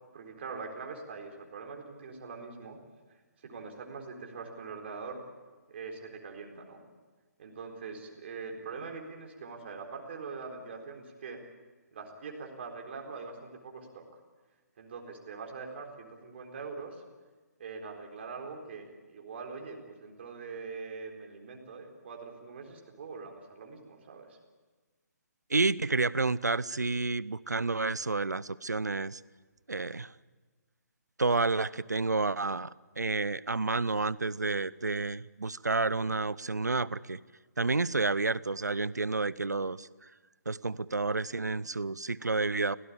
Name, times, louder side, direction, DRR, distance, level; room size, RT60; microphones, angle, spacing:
voice 1, 0.1-2.8 3.4-5.2 5.7-6.8 7.4-11.4 11.9-14.2 14.8-17.0 17.6-24.4, right 4 dB, 40° right, 2 dB, 4.0 m, -43 dB
voice 2, 25.5-29.2 29.7-30.1 31.2-37.2 37.6-39.9 40.5-42.8, right 3 dB, 75° right, 21 dB, 0.7 m, -30 dB
24.5 x 17.5 x 8.7 m, 1.3 s
figure-of-eight pair, 135°, 9 cm